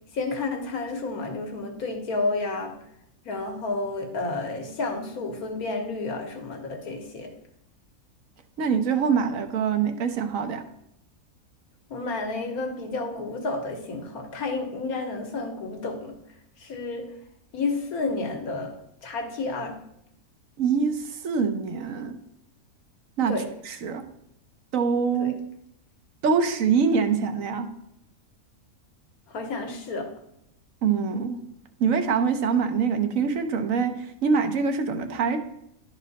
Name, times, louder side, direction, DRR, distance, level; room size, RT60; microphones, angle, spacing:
voice 1, 0.1-2.8 3.2-7.3 11.9-16.1 16.6-17.1 17.5-18.8 19.0-19.8 23.3-23.5 25.2-25.3 29.3-30.1, left 3 dB, 85° left, 4 dB, 1.6 m, -31 dB
voice 2, 8.6-10.6 20.6-22.2 23.2-23.3 23.7-24.0 24.7-25.3 26.2-27.7 30.8-31.4 31.8-33.9 34.2-35.4, right 6 dB, 70° right, 7 dB, 1.1 m, -24 dB
11.0 x 4.2 x 4.0 m, 0.77 s
omnidirectional pair, 1.5 m